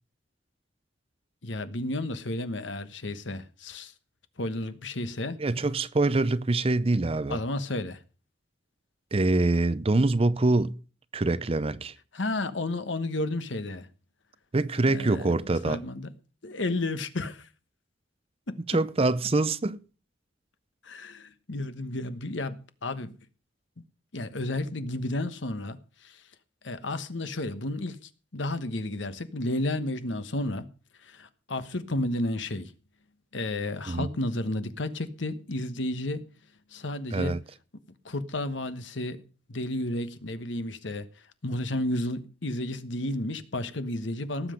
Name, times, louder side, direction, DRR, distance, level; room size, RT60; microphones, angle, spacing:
voice 1, 1.4-3.9 4.4-5.4 7.3-8.0 12.1-13.9 14.8-15.3 15.6-16.1 16.4-17.5 18.5-18.6 20.8-23.1 24.1-26.2 26.6-30.7 31.0-32.7 33.3-36.3 36.7-37.4 38.0-39.2 39.5-41.1 41.4-44.5, left 1 dB, 70° left, 1.2 m, -32 dB
voice 2, 5.4-7.4 9.1-10.8 11.1-11.9 14.5-15.8 18.7-19.8 33.9-34.1 37.1-37.4, right 2 dB, 30° right, 0.6 m, -25 dB
18.0 x 7.9 x 5.1 m
head